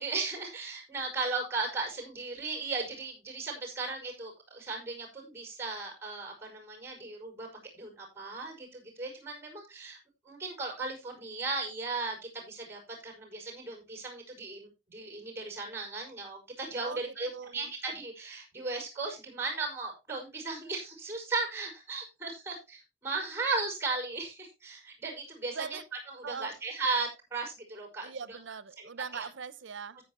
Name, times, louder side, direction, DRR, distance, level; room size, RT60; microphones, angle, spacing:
voice 1, 0.0-7.5 7.7-10.0 10.3-25.8 26.1-28.4 28.8-29.3, right 3 dB, 15° right, 5.4 m, -36 dB
voice 2, 17.3-17.7 25.5-25.8 26.2-26.5 28.0-30.0, right 6 dB, 90° right, 0.7 m, -41 dB
14.5 x 8.8 x 2.9 m
head